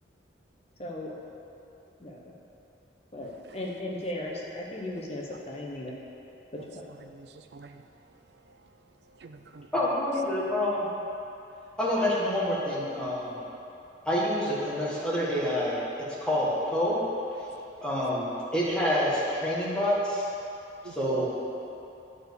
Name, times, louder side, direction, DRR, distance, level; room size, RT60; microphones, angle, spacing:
voice 1, 0.8-1.1 2.0-2.2 3.1-5.9 6.5-6.6, left 1 dB, 35° left, -2 dB, 1.2 m, -36 dB
voice 2, 6.6-7.8 9.2-9.7 20.8-21.3, right 4 dB, 60° right, 7 dB, 0.5 m, -47 dB
voice 3, 9.7-10.9 11.8-13.4 14.0-15.8 16.2-17.0 17.8-20.3 20.8-21.3, left 1 dB, 5° left, -7 dB, 1.6 m, -27 dB
9.1 x 4.9 x 6.8 m, 2.9 s
head